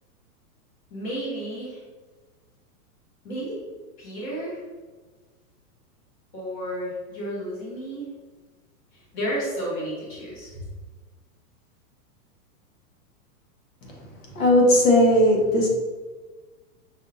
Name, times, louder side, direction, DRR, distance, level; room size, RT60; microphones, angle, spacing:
voice 1, 0.9-1.8 3.2-3.6 4.0-4.6 6.3-8.2 8.9-10.6, equal, 20° left, -5 dB, 0.8 m, -32 dB
voice 2, 14.3-15.7, left 1 dB, 60° left, -1 dB, 1.1 m, -17 dB
5.2 x 2.6 x 2.6 m, 1.3 s
supercardioid pair, 170°, 46 cm